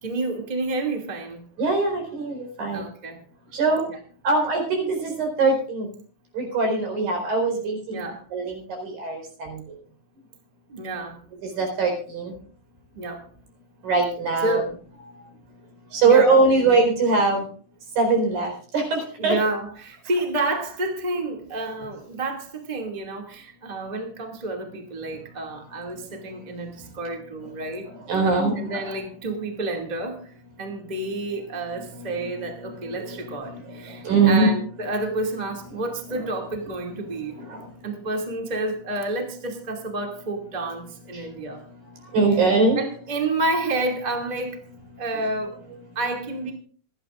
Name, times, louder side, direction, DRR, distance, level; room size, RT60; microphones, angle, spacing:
voice 1, 0.0-1.5 2.7-3.2 7.9-8.2 10.7-11.2 12.9-13.2 14.4-14.7 16.0-16.5 19.2-27.9 28.6-30.3 30.6-37.3 37.8-41.6 42.7-44.6 45.0-45.5 45.9-46.5, right 2 dB, 15° right, 1 dB, 1.8 m, -29 dB
voice 2, 1.6-2.8 3.5-3.8 4.2-5.9 6.3-9.6 11.4-12.3 13.8-14.6 15.9-17.4 18.0-19.4 28.1-28.8 31.8-34.5 36.1-36.3 37.4-37.6 42.1-42.8, right 3 dB, 70° right, 3 dB, 6.2 m, -22 dB
27.0 x 11.0 x 2.5 m, 0.44 s
omnidirectional pair, 4.2 m